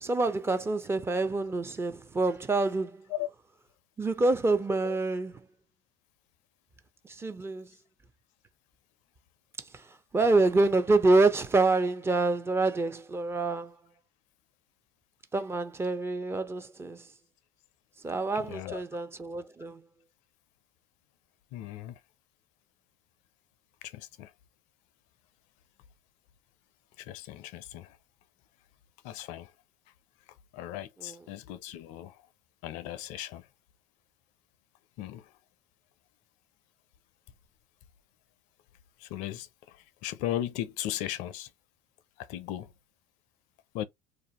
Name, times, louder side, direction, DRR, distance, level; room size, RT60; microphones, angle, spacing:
voice 1, 0.0-3.0 4.0-5.3 7.2-7.7 10.1-13.7 15.3-17.0 18.0-19.8, right 3 dB, 15° right, 0.5 m, -26 dB
voice 2, 18.3-18.8 21.5-22.0 23.8-24.3 27.0-28.0 29.0-29.5 30.5-32.2 32.6-33.5 35.0-35.4 39.0-41.5 42.2-42.7 43.7-43.9, left 13 dB, 60° left, 0.4 m, -37 dB
2.5 x 2.0 x 2.9 m
hypercardioid pair, 80°, 14 cm